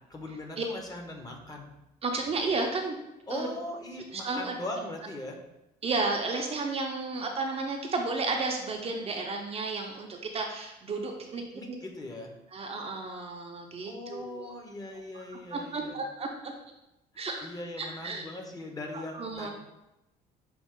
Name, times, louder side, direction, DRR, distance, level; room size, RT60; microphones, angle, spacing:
voice 1, 0.1-1.7 3.3-5.4 11.5-12.3 13.9-16.0 17.1-19.5, left 1 dB, 25° left, 2 dB, 0.9 m, -40 dB
voice 2, 2.0-3.0 3.3-3.5 4.1-4.5 5.8-11.4 11.7-11.8 12.5-14.5 15.1-15.2 15.5-16.5 17.2-17.5 17.8-18.2 19.1-19.5, right 3 dB, 35° right, 2 dB, 0.6 m, -32 dB
6.0 x 2.4 x 3.7 m, 0.91 s
cardioid pair, 110°, 17 cm